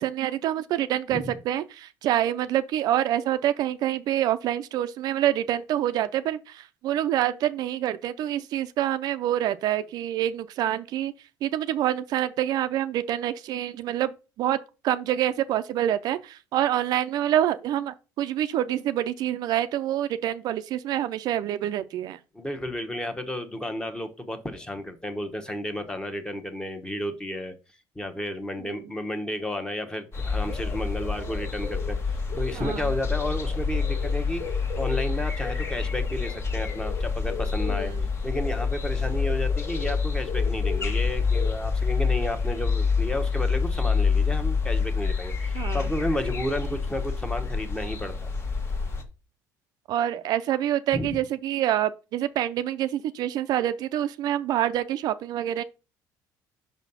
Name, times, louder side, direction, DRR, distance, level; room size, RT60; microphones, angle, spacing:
voice 1, 0.0-11.1 11.4-14.6 14.8-22.2 28.6-28.9 32.5-32.9 37.7-38.0 45.5-45.9 49.9-55.6, right 12 dB, 65° right, 0.4 m, -26 dB
voice 2, 22.3-27.5 28.0-32.0 32.3-34.4 34.7-37.9 38.2-48.3 50.9-51.2, left 1 dB, 10° left, 1.0 m, -32 dB
sound 1, 30.1-49.0, left 5 dB, 35° left, 1.2 m, -27 dB
5.9 x 4.1 x 5.5 m
cardioid pair, 120°, 7 cm